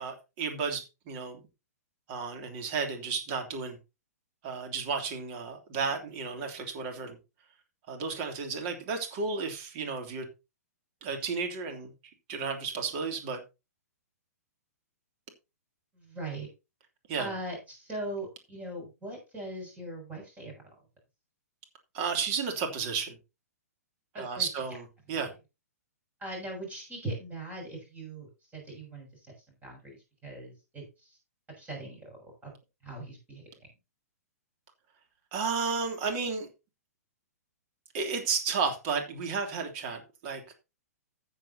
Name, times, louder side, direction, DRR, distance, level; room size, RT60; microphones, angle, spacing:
voice 1, 0.0-1.4 2.1-3.8 4.4-7.2 7.9-10.3 11.0-11.9 12.3-13.4 17.1-17.3 21.9-23.1 24.2-25.3 35.3-36.5 37.9-40.5, right 5 dB, 40° right, 3.1 m, -33 dB
voice 2, 15.9-16.5 17.2-20.7 24.1-24.5 25.1-25.2 26.2-29.3 29.6-31.2 31.6-32.5 32.8-33.4, right 1 dB, 15° right, 7.0 m, -40 dB
14.0 x 9.1 x 2.9 m
figure-of-eight pair, 115°, 9 cm